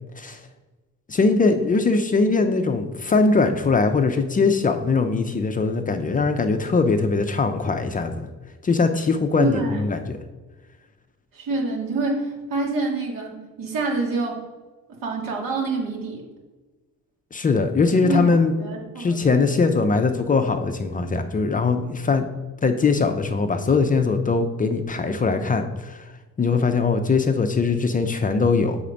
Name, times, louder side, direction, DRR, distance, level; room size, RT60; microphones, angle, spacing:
voice 1, 1.1-8.3 8.6-10.2 17.3-18.5 19.0-22.3 22.6-26.1 26.4-28.8, left 4 dB, 25° left, 7 dB, 0.4 m, -21 dB
voice 2, 9.4-9.8 11.3-14.4 15.0-16.3 18.0-19.5 19.9-20.0, right 2 dB, 80° right, -1 dB, 2.0 m, -27 dB
7.1 x 4.2 x 5.1 m, 1.3 s
cardioid pair, 150°, 33 cm